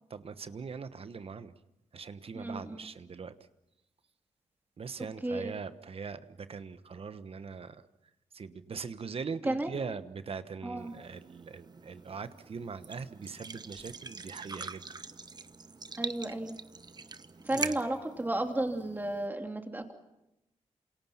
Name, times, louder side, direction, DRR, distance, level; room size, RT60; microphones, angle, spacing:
voice 1, 0.1-1.5 1.9-3.3 4.8-7.8 8.3-14.8 17.5-17.8, right 5 dB, 55° right, 12 dB, 1.2 m, -41 dB
voice 2, 2.3-2.9 5.2-5.5 9.4-9.7 10.6-10.9 16.0-16.6 17.4-19.9, right 1 dB, 15° right, 4 dB, 3.1 m, -33 dB
sound 1, 10.8-19.3, right 4 dB, 35° right, 1.0 m, -43 dB
28.5 x 27.5 x 5.8 m, 0.93 s
cardioid pair, 85°, 12 cm